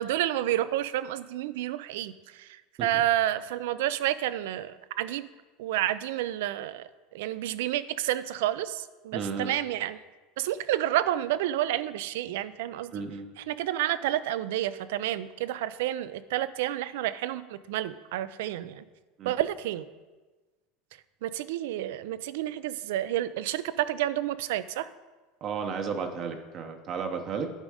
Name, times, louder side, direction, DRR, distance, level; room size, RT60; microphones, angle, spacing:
voice 1, 0.0-5.3 5.6-10.0 10.4-12.9 13.4-18.8 19.2-19.9 21.2-24.9, right 13 dB, 80° right, 15 dB, 0.4 m, -30 dB
voice 2, 9.1-9.5 12.9-13.3 19.2-19.3 25.4-27.5, right 5 dB, 40° right, 5 dB, 0.7 m, -33 dB
8.9 x 5.2 x 4.9 m, 1.2 s
supercardioid pair, 140°, 0 cm